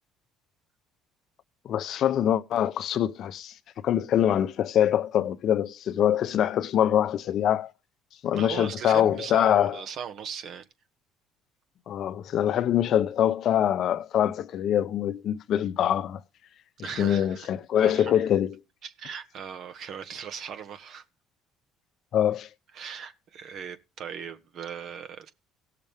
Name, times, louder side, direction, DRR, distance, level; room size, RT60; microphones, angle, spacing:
voice 1, 1.6-3.5 3.8-7.7 8.2-9.8 11.9-16.2 16.8-18.5 22.1-22.5, left 10 dB, 60° left, 0.8 m, -24 dB
voice 2, 8.3-10.6 16.8-17.5 17.7-18.2 18.8-21.0 22.7-25.3, right 7 dB, 60° right, 1.6 m, -38 dB
18.0 x 6.7 x 3.5 m
supercardioid pair, 85°, 0 cm